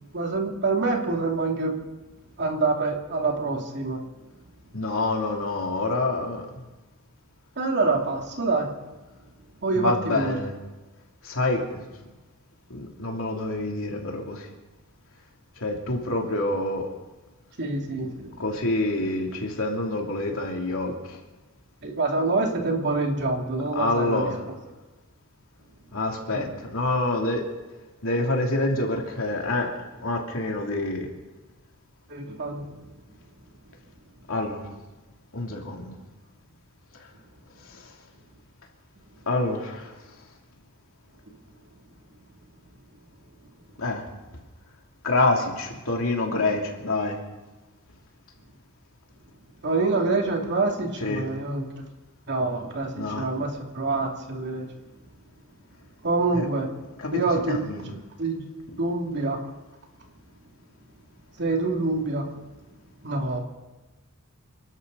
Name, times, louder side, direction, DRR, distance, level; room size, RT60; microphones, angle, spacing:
voice 1, 0.1-1.8 2.4-4.0 7.6-8.7 9.6-10.4 17.6-18.4 21.8-24.3 26.3-26.5 32.1-32.8 49.6-51.6 52.3-54.7 56.0-56.7 57.1-58.4 58.8-59.4 61.4-62.3 63.0-63.4, right 3 dB, 50° right, 1 dB, 2.6 m, -26 dB
voice 2, 4.7-6.5 9.7-10.5 11.2-11.8 12.7-14.4 15.6-16.8 18.4-20.9 23.7-24.3 25.9-27.4 28.0-29.7 30.0-31.1 34.3-34.6 35.3-35.9 39.3-39.9 43.8-44.0 45.0-47.2 51.0-51.2 53.0-53.3 57.0-57.2 57.5-57.8, left 2 dB, 65° left, 1 dB, 2.9 m, -26 dB
29.0 x 12.5 x 4.0 m, 1.1 s
head